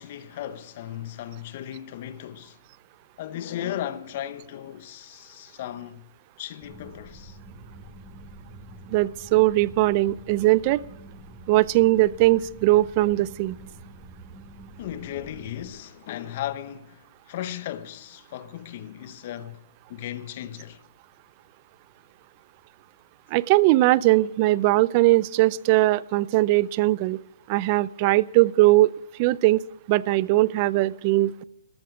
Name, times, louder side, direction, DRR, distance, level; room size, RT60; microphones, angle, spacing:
voice 1, 0.0-2.6 3.2-6.1 6.4-7.4 9.8-10.0 14.8-19.6 19.9-20.8, left 11 dB, 40° left, 0.9 m, -36 dB
sound 1, 6.6-15.7, right 2 dB, 5° right, 5.0 m, -46 dB
voice 2, 8.9-10.8 11.5-13.6 23.3-27.2 27.5-28.9 29.2-29.6 29.9-31.4, right 18 dB, 30° right, 0.4 m, -20 dB
14.5 x 13.0 x 5.0 m
hypercardioid pair, 155°, 0 cm